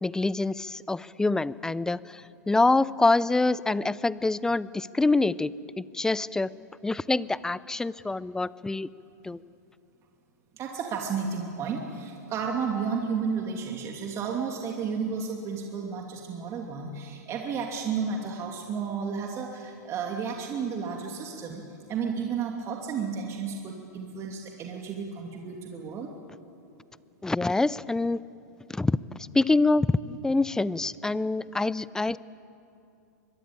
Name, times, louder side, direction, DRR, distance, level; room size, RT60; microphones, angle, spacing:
voice 1, 0.0-5.5 5.8-6.5 6.8-8.9 9.2-9.4 27.2-28.2 28.7-29.0 29.3-32.2, left 3 dB, 5° left, 19 dB, 0.5 m, -25 dB
voice 2, 10.6-21.6 21.9-26.1, right 6 dB, 30° right, 1 dB, 2.7 m, -32 dB
24.0 x 22.0 x 8.9 m, 2.7 s
hypercardioid pair, 120°, 10 cm